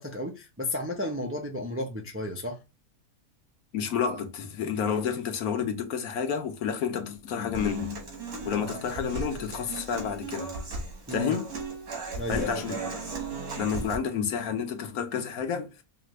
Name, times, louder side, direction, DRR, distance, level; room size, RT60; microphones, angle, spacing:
voice 1, 0.0-2.6 11.1-11.4 12.2-12.8, left 1 dB, 15° right, 0.4 m, -33 dB
voice 2, 3.7-8.0 8.5-10.5 11.1-11.5 12.3-13.0 13.6-15.7, left 7 dB, 80° left, 1.3 m, -30 dB
Human voice / Acoustic guitar, 7.5-14.0, right 3 dB, 90° right, 1.9 m, -36 dB
5.0 x 2.5 x 3.1 m
omnidirectional pair, 1.5 m